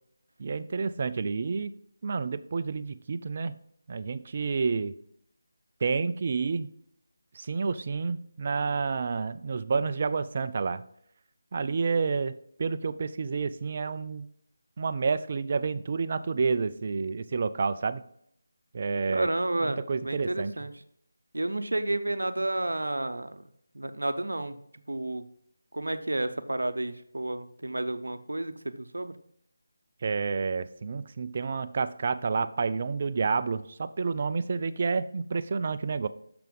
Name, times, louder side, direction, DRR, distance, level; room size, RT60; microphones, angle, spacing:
voice 1, 0.4-1.7 2.0-3.5 3.9-5.0 5.8-6.7 7.3-10.8 11.5-14.3 14.8-18.0 18.7-19.3 19.6-20.5 30.0-36.1, right 4 dB, 40° right, 12 dB, 0.4 m, -29 dB
voice 2, 19.1-20.7 21.3-23.4 23.7-24.6 24.9-25.2 25.7-29.1, right 2 dB, 80° right, 10 dB, 0.7 m, -31 dB
6.7 x 5.9 x 3.6 m, 0.69 s
figure-of-eight pair, 160°, 0 cm